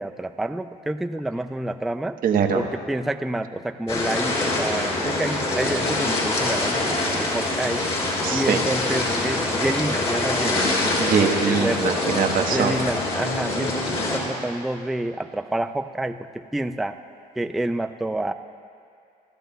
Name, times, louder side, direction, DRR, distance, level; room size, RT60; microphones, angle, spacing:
voice 1, 0.0-2.2 2.5-7.9 8.3-10.8 11.4-11.9 12.4-17.0 17.4-18.3, right 1 dB, ahead, 8 dB, 0.3 m, -28 dB
voice 2, 2.2-2.6 8.2-8.6 11.0-12.8, right 7 dB, 55° right, 4 dB, 1.2 m, -22 dB
sound 1, 3.9-14.2, left 2 dB, 35° left, 4.2 m, -24 dB
27.5 x 13.5 x 2.3 m, 2.4 s
cardioid pair, 110°, 17 cm